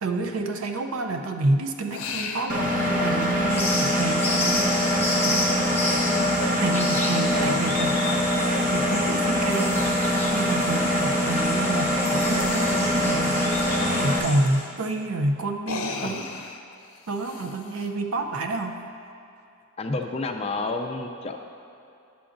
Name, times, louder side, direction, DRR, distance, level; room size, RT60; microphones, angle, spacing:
voice 1, 0.0-5.3 6.6-13.6 13.9-16.5 17.1-18.8, right 2 dB, 80° right, 5 dB, 0.5 m, -29 dB
man drinking vodka shots, 1.9-2.6 3.2-3.3 5.4-5.6 8.7-8.9 10.4-10.5 10.9-11.0 11.3-11.4 14.5-14.6 15.5-17.9, left 4 dB, 85° left, 0.5 m, -35 dB
Engine, 2.5-14.2, equal, 40° right, 0.7 m, -23 dB
sound 1, 3.5-14.7, left 2 dB, 10° left, 0.8 m, -31 dB
voice 2, 19.8-21.4, left 3 dB, 30° left, 4 dB, 0.4 m, -30 dB
9.7 x 6.9 x 2.5 m, 2.7 s
head